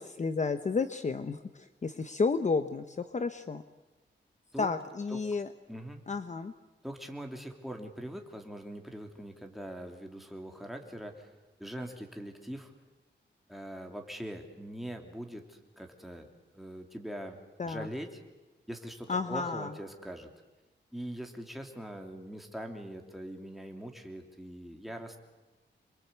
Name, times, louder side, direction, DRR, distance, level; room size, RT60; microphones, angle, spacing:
voice 1, 0.0-3.6 4.6-5.5 6.1-6.5 17.6-17.9 19.1-19.7, left 4 dB, 40° left, 10 dB, 0.9 m, -32 dB
voice 2, 5.7-6.0 6.8-11.3 11.6-12.7 13.5-16.3 16.5-17.4 17.6-18.2 18.7-20.3 20.9-25.2, equal, ahead, 2 dB, 3.1 m, -42 dB
27.5 x 23.5 x 8.3 m, 1.1 s
wide cardioid pair, 160°, 19 cm